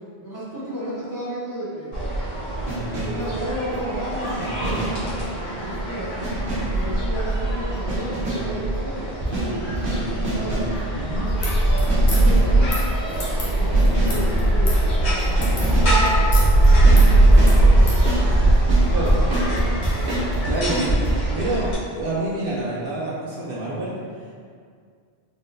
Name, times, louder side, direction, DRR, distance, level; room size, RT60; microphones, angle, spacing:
voice 1, 0.2-1.9 2.8-4.9 5.2-6.1 6.7-10.6 11.6-15.7 16.6-18.0 18.9-19.7, right 1 dB, 20° left, -10 dB, 1.0 m, -33 dB
sound 1, 1.9-21.7, right 1 dB, 90° left, 1.5 m, -20 dB
sound 2, 2.7-3.3 4.4-5.1 6.2-6.8 7.9-8.6 9.2-10.8 11.9-12.6 13.7-14.3 15.4-16.0 16.7-21.1, right 2 dB, 85° right, 1.3 m, -27 dB
voice 2, 11.0-11.3 18.9-19.1 20.4-23.9, right 2 dB, 60° right, -6 dB, 0.9 m, -27 dB
sound 3, 11.4-18.0, left 1 dB, 65° left, 1.2 m, -34 dB
4.1 x 3.7 x 2.6 m, 2.1 s
omnidirectional pair, 1.1 m